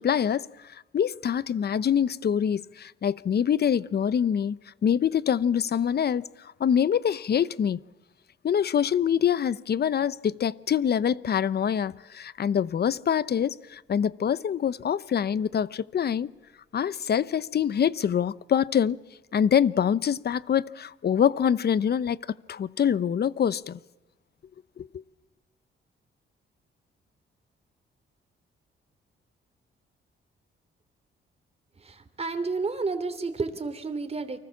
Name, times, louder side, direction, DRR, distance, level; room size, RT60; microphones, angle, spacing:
voice 1, 0.0-6.2 6.6-7.8 8.4-16.3 16.7-19.0 19.3-22.2 22.5-23.8 24.8-25.0, left 8 dB, 50° left, 0.9 m, -25 dB
voice 2, 31.8-34.4, right 4 dB, 30° right, 3.1 m, -31 dB
29.5 x 24.5 x 7.3 m
cardioid pair, 100°, 21 cm